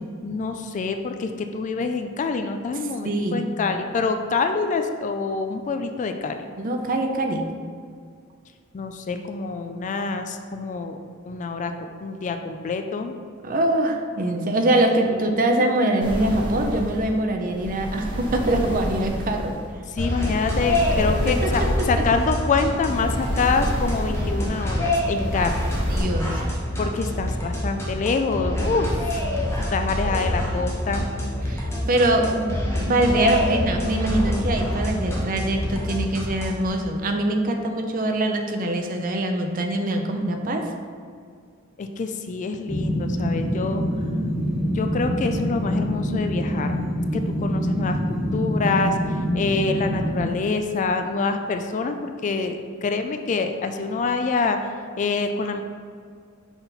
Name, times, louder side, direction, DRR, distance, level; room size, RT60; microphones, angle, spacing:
voice 1, 0.2-6.5 8.7-11.0 11.2-13.1 15.0-15.7 19.9-25.6 26.8-29.3 29.7-31.1 41.8-43.8 44.7-46.7 47.1-49.0 49.3-54.6 55.0-55.6, left 4 dB, 35° left, 7 dB, 0.3 m, -26 dB
voice 2, 3.0-3.4 6.6-7.4 13.4-19.6 21.4-21.5 25.9-26.4 31.5-40.6, right 1 dB, 40° right, 4 dB, 0.5 m, -23 dB
sound 1, 16.0-26.0, equal, 25° right, 1.4 m, -30 dB
sound 2, 20.0-36.7, left 1 dB, 10° left, 1.1 m, -26 dB
sound 3, 42.7-50.3, equal, 5° right, 0.7 m, -25 dB
5.9 x 4.0 x 4.0 m, 2.1 s
head